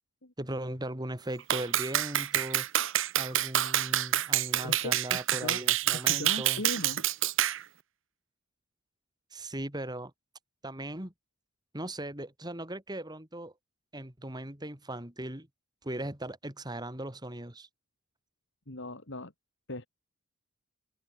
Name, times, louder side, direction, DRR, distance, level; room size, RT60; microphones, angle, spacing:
voice 1, 0.4-2.7 3.1-6.6 9.3-10.1 10.6-11.1 11.7-13.5 13.9-15.5 15.8-17.7, right 1 dB, 20° right, 2.9 m, -38 dB
Clapping, 1.5-7.6, right 12 dB, 60° right, 1.1 m, -27 dB
voice 2, 4.6-5.0 5.4-5.6 6.0-7.0 18.7-19.3 19.7-19.9, left 2 dB, 55° left, 2.8 m, -38 dB
head